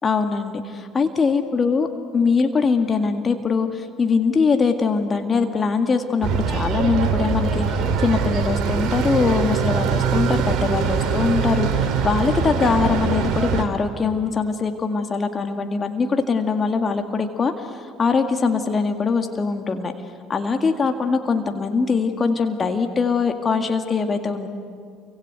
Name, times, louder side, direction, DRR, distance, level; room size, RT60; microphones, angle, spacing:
voice 1, 0.0-1.9 2.1-17.7 18.0-19.9 20.3-24.5, left 5 dB, 30° left, 6 dB, 2.0 m, -22 dB
sound 1, 6.2-13.7, right 6 dB, 50° right, 2.6 m, -22 dB
29.0 x 25.0 x 8.0 m, 2.2 s
figure-of-eight pair, 60°, 0 cm